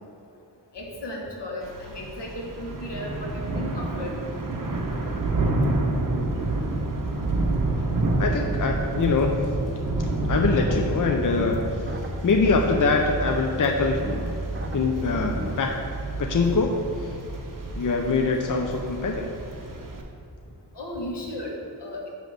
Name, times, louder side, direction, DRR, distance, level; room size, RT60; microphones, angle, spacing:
voice 1, 0.7-4.2 20.8-22.1, left 1 dB, 70° left, -2 dB, 1.7 m, -35 dB
Thunder / Rain, 1.6-20.0, right 2 dB, 50° right, 1.1 m, -29 dB
voice 2, 7.8-9.3 9.7-11.9 12.2-14.0 14.7-15.7 16.2-17.2 17.7-19.3, left 4 dB, 45° left, 2 dB, 0.6 m, -24 dB
sound 1, 10.3-15.5, equal, 25° right, 0.9 m, -35 dB
9.2 x 3.3 x 6.6 m, 2.6 s
wide cardioid pair, 90°, 43 cm